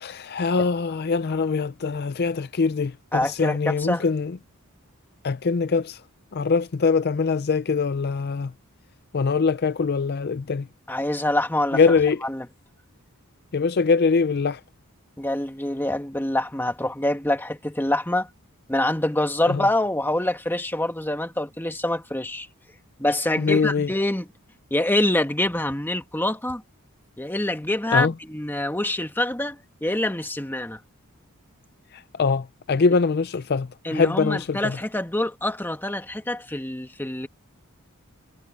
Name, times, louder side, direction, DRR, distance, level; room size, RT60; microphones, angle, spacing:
voice 1, 0.0-4.3 5.2-6.0 6.3-8.5 9.1-10.7 11.7-12.2 13.5-14.6 19.5-19.6 23.4-23.9 27.9-28.1 32.2-34.6, left 4 dB, 45° left, 0.5 m, -23 dB
voice 2, 3.1-4.0 10.9-12.5 15.2-18.3 18.7-22.5 23.0-24.3 24.7-26.6 27.2-30.8 33.8-37.3, left 1 dB, 10° left, 1.5 m, -25 dB
head